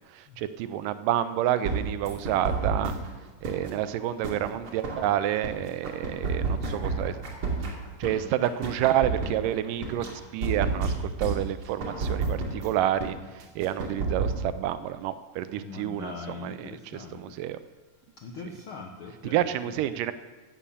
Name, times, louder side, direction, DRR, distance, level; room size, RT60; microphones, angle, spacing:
voice 1, 0.4-2.9 3.4-7.2 8.0-10.1 10.3-10.9 11.2-13.2 13.6-16.1 16.4-16.7 17.1-17.6 19.3-20.1, right 12 dB, 80° right, 12 dB, 2.2 m, -28 dB
sound 1, 1.6-3.1 3.4-5.5 5.8-8.1 8.4-10.1 10.4-12.7 13.0-13.1 13.4-14.4, right 4 dB, 40° right, 3.1 m, -29 dB
voice 2, 15.6-17.4 18.2-19.8, left 4 dB, 85° left, 3 dB, 1.2 m, -41 dB
16.5 x 8.5 x 7.0 m, 1.3 s
omnidirectional pair, 3.9 m